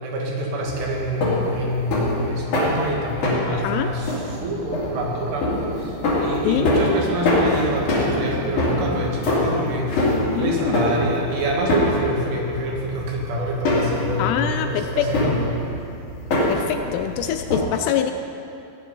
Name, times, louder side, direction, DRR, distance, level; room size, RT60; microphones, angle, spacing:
voice 1, 0.0-15.6, right 1 dB, 70° right, -2 dB, 4.1 m, -26 dB
sound 1, 0.6-17.6, left 1 dB, 45° left, 3.8 m, -25 dB
voice 2, 3.5-3.9 6.4-6.7 10.3-10.8 14.2-15.4 16.5-18.1, left 9 dB, 80° left, 8 dB, 2.5 m, -24 dB
18.0 x 10.0 x 5.5 m, 2.6 s
omnidirectional pair, 5.3 m